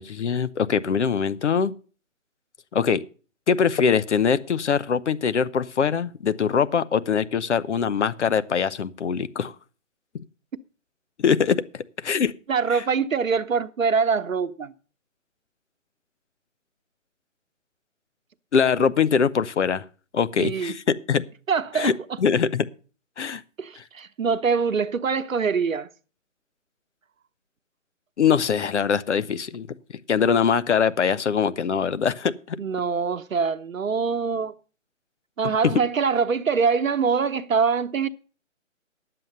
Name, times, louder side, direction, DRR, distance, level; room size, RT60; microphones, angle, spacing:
voice 1, 0.0-1.7 2.7-3.0 3.5-9.5 11.2-12.3 18.5-19.8 20.1-20.8 21.1-21.2 21.7-21.9 22.2-22.6 23.2-23.4 23.8-23.9 28.2-29.7 30.1-32.6 35.6-35.7, left 6 dB, 60° left, 0.8 m, -22 dB
voice 2, 12.5-14.7 20.4-20.7 21.5-21.9 23.6-25.9 32.6-34.5 35.4-38.1, right 5 dB, 85° right, 1.0 m, -24 dB
11.0 x 7.8 x 6.6 m
hypercardioid pair, 155°, 39 cm